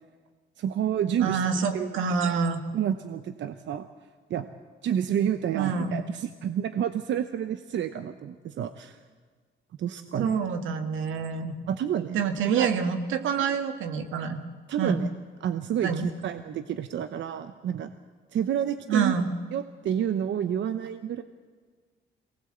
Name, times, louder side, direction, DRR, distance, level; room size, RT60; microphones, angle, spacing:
voice 1, 0.6-1.5 1.7-1.9 2.3-2.4 2.7-3.9 4.3-4.5 4.8-9.0 9.8-10.4 11.7-12.7 14.7-15.1 15.4-17.9 18.3-19.1 19.5-21.2, right 9 dB, 65° right, 10 dB, 0.9 m, -29 dB
voice 2, 1.2-2.6 5.5-6.0 10.2-11.5 12.1-14.4 14.8-15.0 15.8-16.1 18.9-19.3, right 6 dB, 85° right, 7 dB, 1.9 m, -27 dB
22.5 x 19.0 x 7.9 m, 1.5 s
cardioid pair, 90°, 20 cm